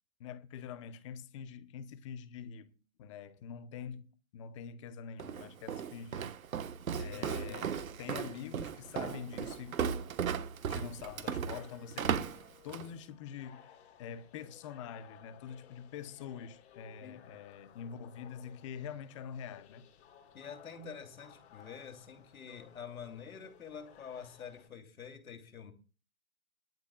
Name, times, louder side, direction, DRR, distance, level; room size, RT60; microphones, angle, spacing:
voice 1, 0.2-2.7 3.0-6.3 7.0-9.8 10.7-12.3 12.6-13.6 14.0-19.8, left 8 dB, 20° left, 0.8 m, -45 dB
Walk footsteps, 5.2-12.9, right 7 dB, 70° right, 1.2 m, -36 dB
voice 2, 6.9-7.7 17.0-17.3 20.3-25.7, left 7 dB, 75° left, 2.8 m, -47 dB
sound 1, 8.3-24.7, left 9 dB, 50° left, 3.2 m, -60 dB
21.5 x 12.0 x 2.3 m
hypercardioid pair, 155°, 42 cm